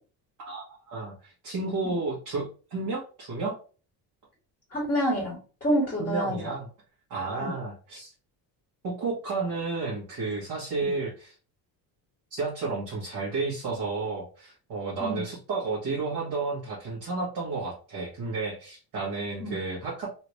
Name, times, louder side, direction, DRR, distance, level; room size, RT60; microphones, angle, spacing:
voice 1, 0.4-3.6 6.0-6.7 7.1-8.1 8.8-11.3 12.3-20.1, right 3 dB, 55° right, -6 dB, 1.4 m, -32 dB
voice 2, 4.7-6.4 7.4-7.5 10.8-10.9 15.0-15.2 19.4-19.5, equal, 20° left, -5 dB, 1.9 m, -27 dB
3.3 x 2.8 x 3.1 m, 0.37 s
cardioid pair, 150°, 39 cm